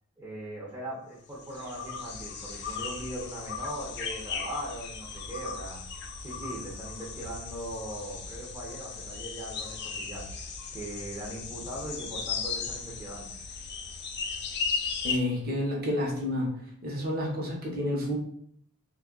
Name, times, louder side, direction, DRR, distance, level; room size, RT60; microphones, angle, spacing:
voice 1, 0.2-5.8 6.2-10.2 10.7-13.3, right 1 dB, 15° right, -6 dB, 0.7 m, -40 dB
sound 1, 1.3-15.2, left 5 dB, 50° left, 0.5 m, -36 dB
voice 2, 15.0-16.5 16.8-18.2, left 1 dB, 45° right, -1 dB, 1.0 m, -29 dB
3.3 x 2.3 x 3.8 m, 0.67 s
head